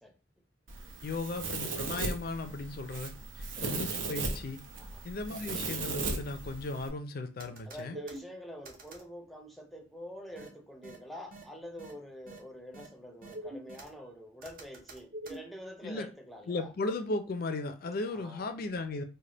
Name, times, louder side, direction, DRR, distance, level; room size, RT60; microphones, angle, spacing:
Domestic sounds home sounds, 0.7-6.9, right 3 dB, 80° right, 0.7 m, -37 dB
voice 1, 1.0-4.6 5.0-8.0 15.8-16.1 16.5-19.0, left 3 dB, 50° left, 0.4 m, -36 dB
sound 1, 7.4-8.2 8.6-9.0 10.4-10.5 10.8-11.0 11.3-11.4 11.8-11.9 12.3-12.4 12.7-12.9 13.2-13.9 14.4-15.4, right 1 dB, 45° right, 0.8 m, -44 dB
voice 2, 7.7-16.7 18.1-18.5, equal, ahead, 0.5 m, -46 dB
3.3 x 2.1 x 3.9 m
head